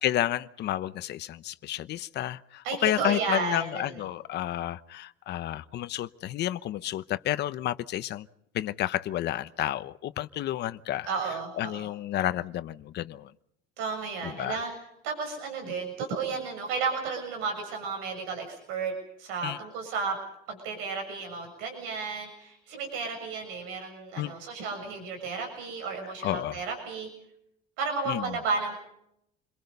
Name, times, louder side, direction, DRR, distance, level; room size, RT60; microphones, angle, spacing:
voice 1, 0.0-8.3 8.5-13.3 14.2-14.6 19.4-19.6 24.2-24.3 26.2-26.6 28.1-28.4, left 13 dB, 55° left, 1.0 m, -31 dB
voice 2, 2.6-4.0 11.0-11.9 13.8-14.7 15.0-18.9 19.2-20.2 20.5-27.1 27.8-28.7, right 4 dB, 85° right, 7.1 m, -33 dB
28.5 x 22.5 x 5.5 m
cardioid pair, 120°, 20 cm